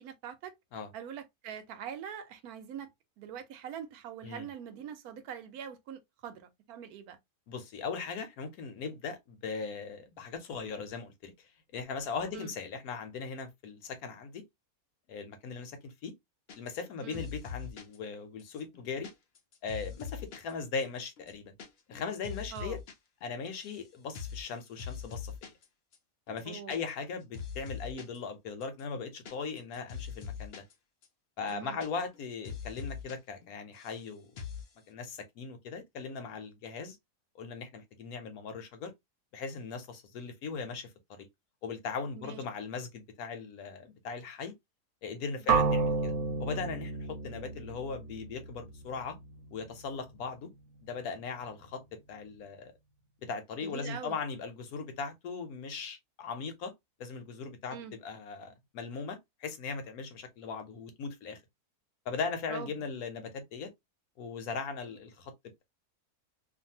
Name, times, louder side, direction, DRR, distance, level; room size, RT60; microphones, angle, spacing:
voice 1, 0.0-0.5 0.9-2.9 3.2-7.2 12.3-12.5 17.0-17.2 22.5-22.8 26.5-26.8 31.5-31.8 42.2-42.4 53.6-54.2 57.7-57.9 62.5-62.9, right 8 dB, 85° right, 1.1 m, -43 dB
voice 2, 7.5-14.4 15.1-16.1 16.6-19.1 19.6-21.5 21.9-22.8 23.2-25.5 26.3-30.6 31.4-34.3 34.9-37.0 37.4-38.9 39.3-40.9 41.6-44.5 45.0-46.1 46.4-49.2 49.5-50.5 50.8-51.8 52.1-52.7 53.2-56.7 57.0-61.4 62.1-63.7 64.2-65.3, left 5 dB, 80° left, 1.2 m, -39 dB
sound 1, 16.5-16.9 17.1-18.0 18.4-20.5 20.8-20.9 21.2-21.7 21.9-22.9 23.2-23.8 24.1-24.5 24.8-25.7 25.9-26.0 26.3-27.1 27.3-28.2 28.6-30.7 31.0-31.1 31.4-32.2 32.4-33.2 33.4-34.0 34.4-34.7, left 7 dB, 55° left, 0.7 m, -42 dB
sound 2, 45.5-49.4, right 4 dB, 70° right, 1.0 m, -31 dB
2.6 x 2.5 x 2.7 m
omnidirectional pair, 1.5 m